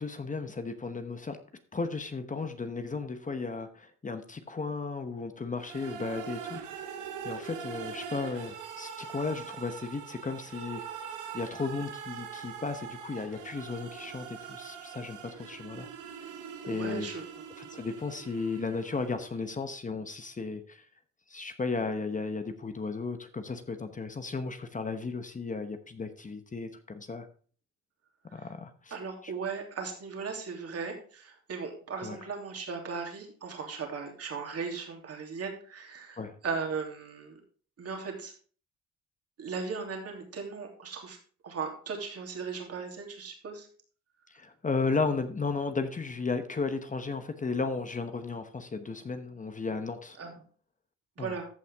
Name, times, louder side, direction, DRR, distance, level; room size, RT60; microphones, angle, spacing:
voice 1, 0.0-1.4 1.7-10.8 11.3-15.9 16.7-17.1 17.6-20.9 21.3-27.3 28.3-29.0 29.2-29.3 32.0-32.2 36.2-36.4 44.3-50.2 51.2-51.4, left 4 dB, 25° left, 8 dB, 1.0 m, -34 dB
sound 1, 5.6-19.5, right 7 dB, 85° right, 1.4 m, -43 dB
voice 2, 16.6-17.2 28.3-28.5 28.9-37.4 37.8-38.3 39.4-41.2 41.4-43.7 50.2-50.3 51.2-51.5, right 5 dB, 50° right, 2 dB, 2.9 m, -37 dB
14.0 x 5.7 x 3.5 m, 0.43 s
cardioid pair, 90°, 30 cm